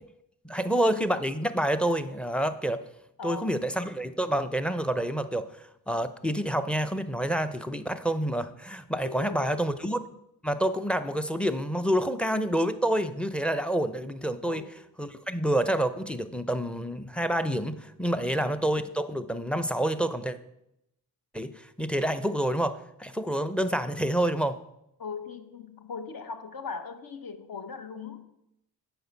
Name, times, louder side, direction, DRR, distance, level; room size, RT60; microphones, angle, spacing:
voice 1, 0.4-2.8 3.2-5.5 5.9-10.0 10.4-14.7 15.0-20.4 21.3-24.6, right 1 dB, 5° left, 11 dB, 0.5 m, -28 dB
voice 2, 3.2-3.6 9.0-9.6 14.4-14.7 25.0-28.2, left 5 dB, 55° left, 8 dB, 1.0 m, -39 dB
7.8 x 5.0 x 5.2 m, 0.82 s
supercardioid pair, 50°, 43 cm